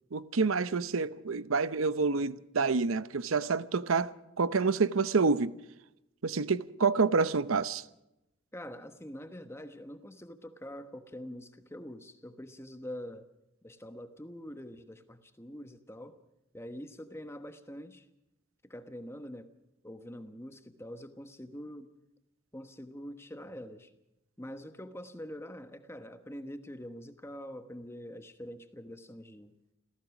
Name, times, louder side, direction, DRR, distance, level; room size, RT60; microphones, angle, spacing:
voice 1, 0.1-5.5 6.2-7.8, right 4 dB, 85° right, 0.8 m, -28 dB
voice 2, 8.5-13.3 13.6-16.2 16.5-18.1 18.6-19.5 19.8-21.9 22.5-23.9 24.4-29.5, equal, 10° left, 1.2 m, -45 dB
28.0 x 16.0 x 6.1 m
head